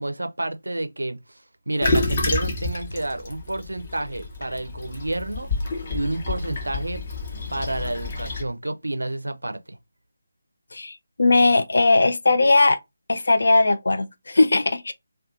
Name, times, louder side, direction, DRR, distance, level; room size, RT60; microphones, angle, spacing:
voice 1, 0.0-1.4 1.7-5.5 5.9-7.0 7.5-9.8, right 1 dB, 75° right, 0.4 m, -29 dB
Toilet flush, 1.8-8.4, left 2 dB, 35° left, 0.7 m, -29 dB
voice 2, 10.7-12.8 13.1-14.9, left 3 dB, 60° left, 0.3 m, -19 dB
2.4 x 2.3 x 2.5 m
figure-of-eight pair, 155°, 0 cm